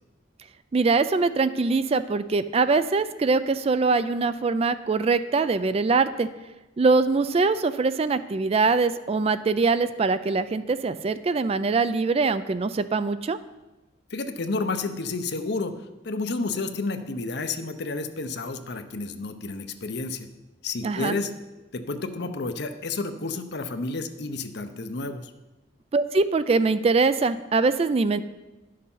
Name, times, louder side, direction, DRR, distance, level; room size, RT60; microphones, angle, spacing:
voice 1, 0.7-6.3 6.8-13.4 20.8-21.1 25.9-28.2, right 4 dB, 35° right, 13 dB, 0.4 m, -23 dB
voice 2, 14.1-15.7 16.0-20.3 20.6-21.3 21.7-25.3, left 3 dB, 60° left, 8 dB, 0.7 m, -30 dB
11.0 x 6.6 x 5.6 m, 1.1 s
head